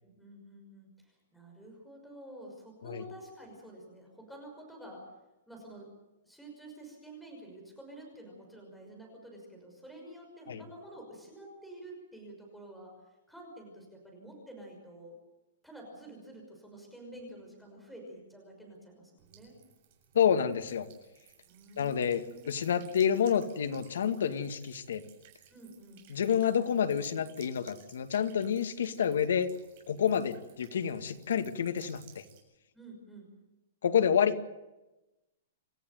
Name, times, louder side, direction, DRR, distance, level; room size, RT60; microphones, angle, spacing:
voice 1, 0.0-5.0 5.5-5.9 6.2-12.9 13.3-15.2 15.6-19.5 21.5-22.6 25.5-26.1 32.7-33.3, right 1 dB, ahead, 0 dB, 5.8 m, -49 dB
Buzz / Water tap faucet / Trickle dribble, 19.2-32.4, right 9 dB, 35° right, 7.1 m, -59 dB
voice 2, 20.1-20.9 21.8-25.0 26.1-29.5 29.9-32.2 33.8-34.5, left 8 dB, 85° left, 8 dB, 2.1 m, -29 dB
28.0 x 14.0 x 9.3 m, 1.0 s
hypercardioid pair, 175°, 0 cm